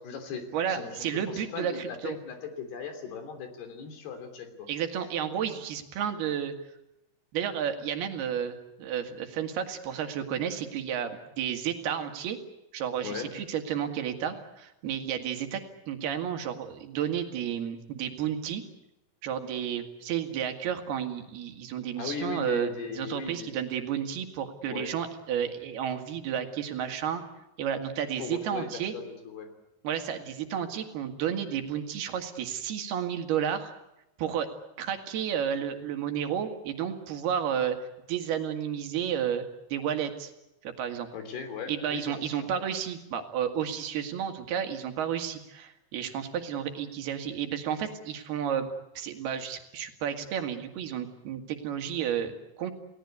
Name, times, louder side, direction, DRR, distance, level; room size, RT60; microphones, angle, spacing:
voice 1, 0.0-4.7 13.0-13.3 22.0-23.5 24.7-24.9 28.2-29.5 41.1-42.5, left 6 dB, 75° left, 7 dB, 5.2 m, -38 dB
voice 2, 0.5-2.2 4.7-6.5 7.3-12.4 12.7-15.6 15.9-18.6 19.2-22.7 23.0-27.2 27.6-28.9 29.8-33.7 34.2-34.5 34.8-37.8 38.1-39.4 39.7-40.3 40.6-41.1 41.7-48.7 49.0-52.7, right 9 dB, 75° right, 6 dB, 3.8 m, -32 dB
29.5 x 18.5 x 8.2 m, 0.91 s
omnidirectional pair, 4.6 m